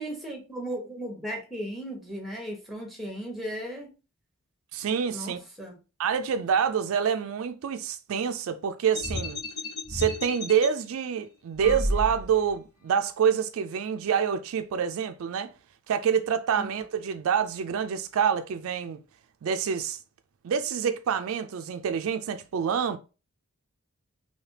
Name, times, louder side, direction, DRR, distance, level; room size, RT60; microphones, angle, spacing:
voice 1, 0.0-3.9 5.1-5.8 16.6-16.7, right 1 dB, ahead, 0.9 m, -36 dB
voice 2, 4.7-5.4 6.0-9.4 9.9-15.5 15.9-19.0 19.4-20.0 20.4-23.0, right 7 dB, 70° right, 0.3 m, -27 dB
sound 1, 8.9-10.7 11.6-12.5, left 1 dB, 75° left, 1.1 m, -32 dB
3.3 x 2.8 x 2.8 m
head